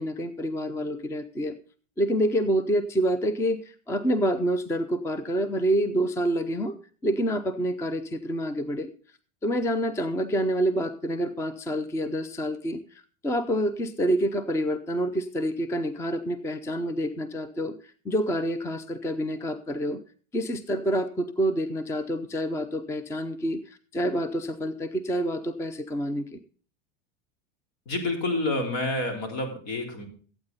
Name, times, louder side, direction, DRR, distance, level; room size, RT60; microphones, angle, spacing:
voice 1, 0.0-1.5 2.0-6.7 7.0-8.9 9.4-12.8 13.2-17.7 18.0-20.0 20.3-26.4, equal, 10° left, 12 dB, 0.5 m, -27 dB
voice 2, 27.9-30.1, left 2 dB, 65° left, 3 dB, 4.1 m, -28 dB
13.5 x 8.9 x 4.0 m, 0.40 s
supercardioid pair, 130°, 36 cm